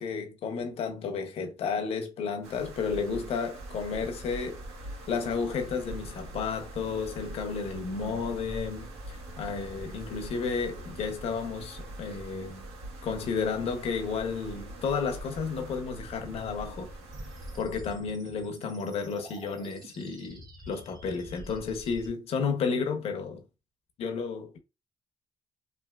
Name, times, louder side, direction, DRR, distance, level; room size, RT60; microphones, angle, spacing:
voice 1, 0.0-4.6 5.1-12.7 13.0-16.9 17.5-23.4 24.0-24.6, left 5 dB, 70° left, 0.8 m, -32 dB
sound 1, 2.4-17.6, right 2 dB, 85° right, 1.6 m, -45 dB
sound 2, 3.6-18.0, right 1 dB, 15° right, 0.7 m, -46 dB
sound 3, 17.1-22.1, equal, 40° right, 1.1 m, -48 dB
3.4 x 2.6 x 2.3 m
cardioid pair, 100°, 11 cm